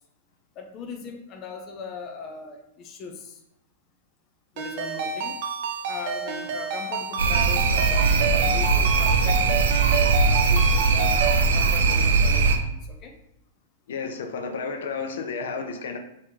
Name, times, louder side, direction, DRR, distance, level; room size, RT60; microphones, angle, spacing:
voice 1, 0.6-3.4 4.5-5.4 5.9-9.6 10.2-13.2, left 4 dB, 25° left, 3 dB, 0.5 m, -39 dB
Ringtone, 4.6-11.4, right 5 dB, 40° right, 0.5 m, -30 dB
sound 1, 7.2-12.6, right 4 dB, 90° right, 0.6 m, -20 dB
voice 2, 13.9-16.0, left 5 dB, 70° left, 6 dB, 0.7 m, -32 dB
3.7 x 2.9 x 4.6 m, 0.79 s
supercardioid pair, 170°, 0 cm